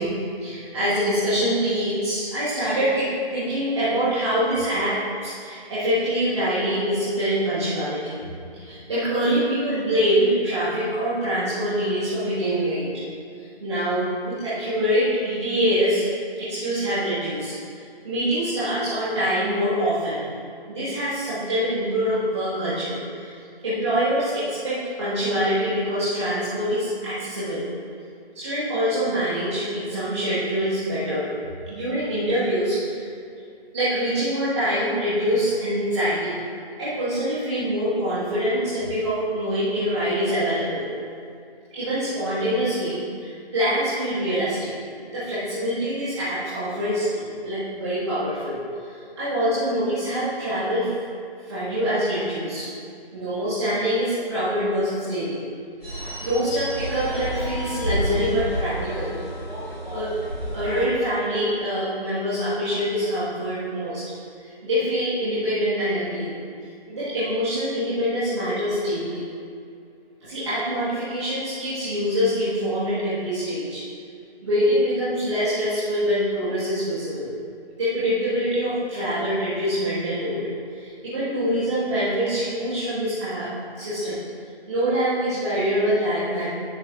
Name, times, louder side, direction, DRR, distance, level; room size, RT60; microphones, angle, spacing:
voice 1, 0.0-8.2 8.5-12.9 13.6-16.1 16.4-17.6 18.0-20.2 20.7-23.3 23.6-27.6 28.3-31.3 31.7-33.1 33.7-36.4 36.8-40.8 41.7-44.7 45.0-50.9 51.5-52.7 53.1-55.4 56.2-59.1 59.9-60.1 60.5-64.0 64.6-66.3 66.9-69.2 70.2-73.8 74.4-77.3 77.8-80.4 80.7-84.2 84.7-86.5, equal, 25° right, -12 dB, 1.5 m, -25 dB
sound 1, 55.8-60.8, right 1 dB, 5° left, 0.8 m, -30 dB
10.5 x 9.5 x 2.4 m, 2.4 s
figure-of-eight pair, 160°, 32 cm